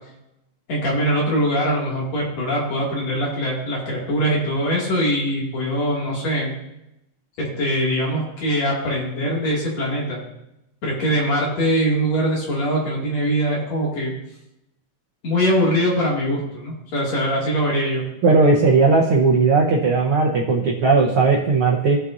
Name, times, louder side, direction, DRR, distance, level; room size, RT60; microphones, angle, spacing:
voice 1, 0.7-6.5 7.4-10.2 10.8-14.1 15.2-18.0, equal, 55° left, -3 dB, 3.3 m, -22 dB
voice 2, 18.2-22.0, right 4 dB, 80° right, -1 dB, 1.2 m, -17 dB
17.5 x 7.0 x 2.6 m, 0.88 s
omnidirectional pair, 3.9 m